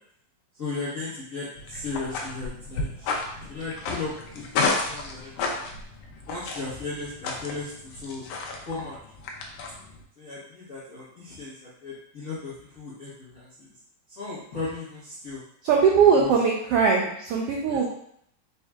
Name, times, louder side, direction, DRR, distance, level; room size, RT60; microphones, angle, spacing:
voice 1, 0.6-4.4 4.9-5.6 6.3-8.3 8.7-9.0 10.2-13.7 14.2-15.4 16.1-16.3 17.7-17.8, left 3 dB, 55° left, -11 dB, 0.9 m, -36 dB
sound 1, 1.6-10.0, left 3 dB, 75° left, 1.6 m, -32 dB
voice 2, 15.6-17.8, right 6 dB, 90° right, -1 dB, 1.3 m, -20 dB
4.7 x 4.3 x 2.3 m, 0.69 s
omnidirectional pair, 3.3 m